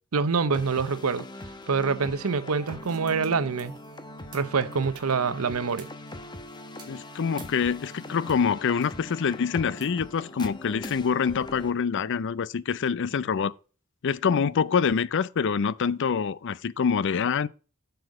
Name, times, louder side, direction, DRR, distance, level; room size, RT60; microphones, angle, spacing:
voice 1, 0.1-1.2 1.7-3.8 4.3-5.9, right 5 dB, 85° right, 0.7 m, -26 dB
sound 1, 0.5-11.7, left 1 dB, 20° left, 0.9 m, -41 dB
sound 2, 2.3-8.4 8.8-10.6, right 4 dB, 20° right, 2.4 m, -54 dB
voice 2, 6.9-13.5 14.0-17.5, left 6 dB, 60° left, 0.5 m, -26 dB
7.8 x 6.9 x 4.8 m
head